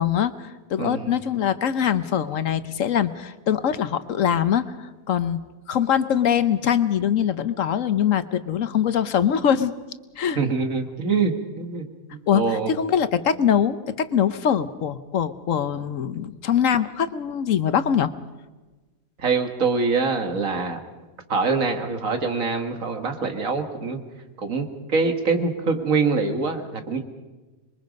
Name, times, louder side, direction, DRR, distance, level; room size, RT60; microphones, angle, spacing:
voice 1, 0.0-5.4 5.7-9.7 10.2-10.4 12.3-18.1, left 9 dB, 65° left, 13 dB, 1.2 m, -23 dB
voice 2, 0.8-1.2 10.4-11.9 12.3-12.7 19.2-20.8 21.3-24.0 24.4-27.0, right 4 dB, 65° right, 7 dB, 2.1 m, -24 dB
26.0 x 22.0 x 5.3 m, 1.2 s
omnidirectional pair, 1.5 m